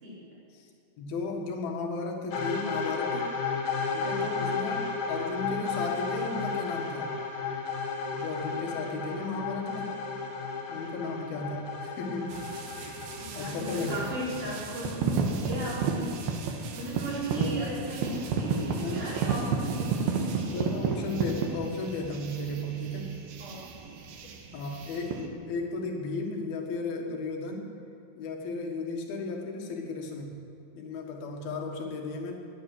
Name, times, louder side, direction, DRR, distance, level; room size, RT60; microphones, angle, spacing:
voice 1, 0.0-0.4 4.0-4.4 10.9-11.1 13.2-20.7 23.4-24.0, right 1 dB, 55° right, -7 dB, 6.1 m, -37 dB
voice 2, 1.0-3.3 3.9-4.8 5.1-7.2 8.1-9.9 10.7-12.4 12.8-13.1 13.4-14.5 17.3-17.7 18.7-19.1 20.5-23.1 24.5-27.7 28.2-30.3 30.8-32.3, left 3 dB, 80° left, 2 dB, 3.5 m, -35 dB
sound 1, 2.3-14.4, left 4 dB, 55° left, 2.8 m, -33 dB
sound 2, 12.3-25.3, right 5 dB, 85° right, 3.2 m, -32 dB
19.5 x 9.6 x 7.7 m, 2.6 s
omnidirectional pair, 4.3 m